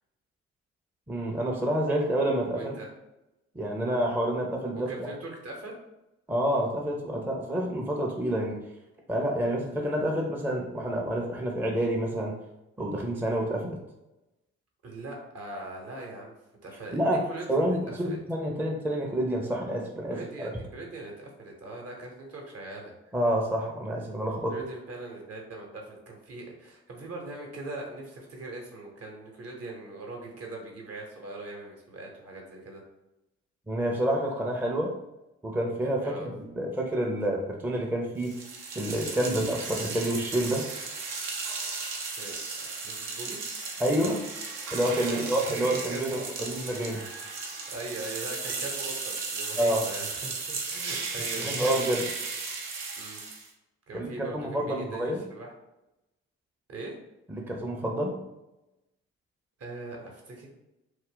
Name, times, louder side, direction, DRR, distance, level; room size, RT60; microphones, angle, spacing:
voice 1, 1.1-2.7 3.5-5.1 6.3-8.6 9.1-12.4 12.8-13.8 16.9-20.5 23.1-24.5 33.7-34.9 35.4-38.5 38.8-40.7 43.8-44.2 44.7-47.0 49.6-49.8 51.4-52.1 53.9-55.2 57.3-58.2, right 1 dB, 5° right, 0 dB, 0.5 m, -28 dB
voice 2, 2.5-2.9 4.7-5.7 14.8-16.3 16.6-18.2 20.1-23.1 24.5-32.8 36.0-36.3 42.2-43.4 45.1-46.5 47.7-52.0 53.0-53.2 53.9-55.5 56.7-57.0 59.6-60.5, right 2 dB, 50° right, 0 dB, 0.9 m, -41 dB
sound 1, 38.2-53.5, right 4 dB, 70° right, 0.6 m, -35 dB
2.3 x 2.1 x 3.6 m, 0.93 s
hypercardioid pair, 50°, 32 cm